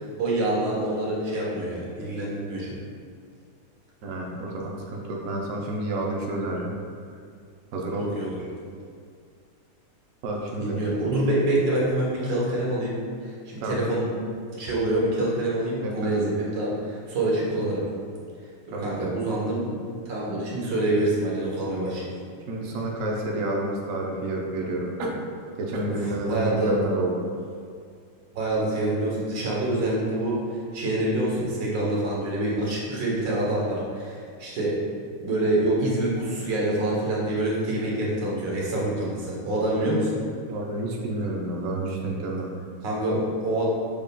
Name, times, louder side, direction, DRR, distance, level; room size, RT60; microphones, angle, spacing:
voice 1, 0.2-2.7 8.0-8.4 10.6-13.0 13.5-14.1 14.5-17.8 18.8-19.7 20.1-22.1 25.9-26.8 28.3-30.4 30.7-34.8 35.2-40.1 42.8-43.7, right 1 dB, 65° right, -5 dB, 1.6 m, -26 dB
voice 2, 4.0-6.8 7.7-8.1 10.2-10.8 13.6-13.8 15.8-16.1 18.7-19.1 22.5-25.2 25.6-27.2 39.8-39.9 40.5-42.5, right 1 dB, 80° right, -1 dB, 0.7 m, -29 dB
6.3 x 3.5 x 2.2 m, 2.3 s
omnidirectional pair, 2.2 m